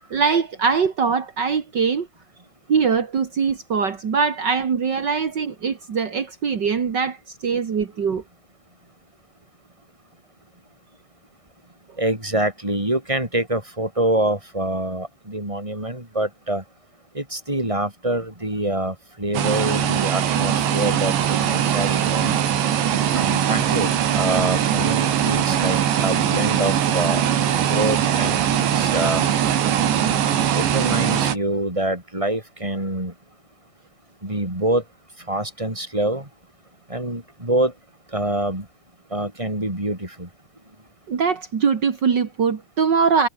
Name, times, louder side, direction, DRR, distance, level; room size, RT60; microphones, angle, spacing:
voice 1, 0.1-2.1 2.7-8.2 41.1-43.3, right 6 dB, 50° right, 1.3 m, -22 dB
voice 2, 12.0-16.6 17.1-22.4 23.1-23.9 24.2-29.2 30.5-33.1 34.2-34.8 35.3-36.3 36.9-37.7 38.1-38.7 39.1-40.3, right 1 dB, 5° right, 5.2 m, -25 dB
sound 1, 19.3-31.4, right 9 dB, 85° right, 4.9 m, -21 dB
omnidirectional pair, 4.9 m